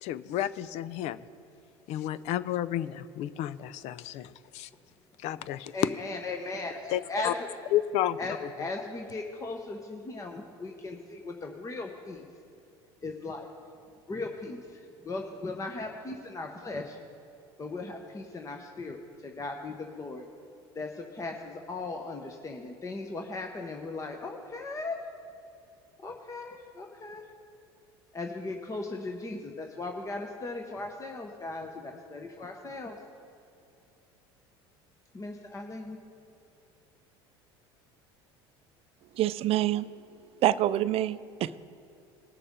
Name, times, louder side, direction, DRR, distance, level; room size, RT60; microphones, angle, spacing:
voice 1, 0.0-1.2 1.9-4.7 5.2-5.7 6.9-7.3 7.7-8.5, left 12 dB, 60° left, 16 dB, 0.5 m, -31 dB
voice 2, 5.7-7.3 8.2-12.3 13.0-13.5 14.1-17.0 17.6-20.2 20.7-25.0 26.0-27.2 28.1-33.0 35.1-36.0, left 3 dB, 25° left, 3 dB, 1.0 m, -38 dB
voice 3, 39.2-39.9 40.4-41.6, right 13 dB, 50° right, 15 dB, 0.5 m, -26 dB
19.5 x 6.7 x 3.7 m, 2.6 s
hypercardioid pair, 80°, 13 cm